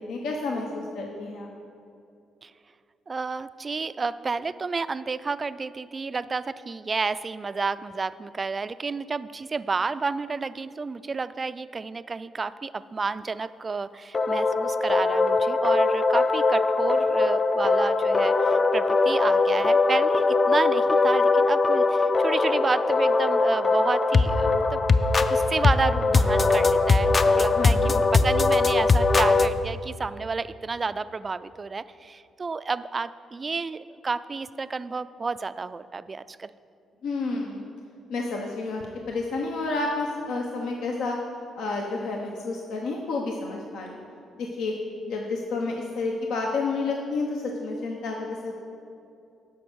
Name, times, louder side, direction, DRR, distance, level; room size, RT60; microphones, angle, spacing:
voice 1, 0.0-1.5 27.5-27.9 37.0-37.7 38.1-41.2 41.6-44.0 44.4-44.8 45.1-48.6, left 3 dB, 80° left, 0 dB, 0.9 m, -30 dB
voice 2, 3.1-24.8 25.3-36.5, right 4 dB, 30° right, 14 dB, 0.3 m, -30 dB
sound 1, 14.1-29.5, left 3 dB, 35° left, 0.4 m, -21 dB
12.0 x 5.2 x 6.3 m, 2.6 s
cardioid pair, 90°, 0 cm